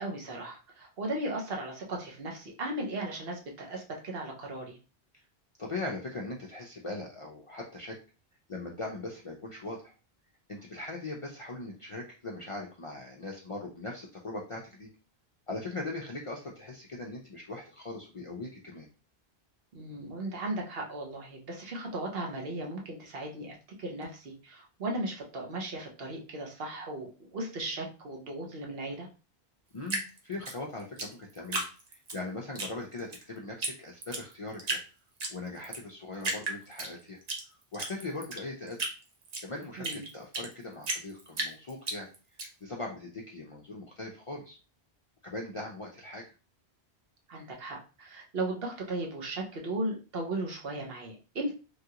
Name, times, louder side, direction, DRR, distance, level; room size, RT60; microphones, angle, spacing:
voice 1, 0.0-4.8 19.7-29.1 39.8-40.0 47.3-51.6, right 1 dB, 65° right, 0 dB, 1.0 m, -36 dB
voice 2, 5.6-8.0 8.5-9.9 10.5-14.9 15.5-18.9 29.7-34.8 35.3-37.2 37.5-38.8 39.4-42.1 42.6-44.6 45.2-46.3, left 2 dB, 50° left, -1 dB, 0.4 m, -40 dB
Drip, 29.9-32.2 32.6-33.2 33.6-33.7 34.0-34.8 35.2-35.8 36.2-37.4 37.7-40.5 40.8-42.5, right 2 dB, 45° right, 0.7 m, -34 dB
3.2 x 2.4 x 2.8 m, 0.34 s
omnidirectional pair, 1.1 m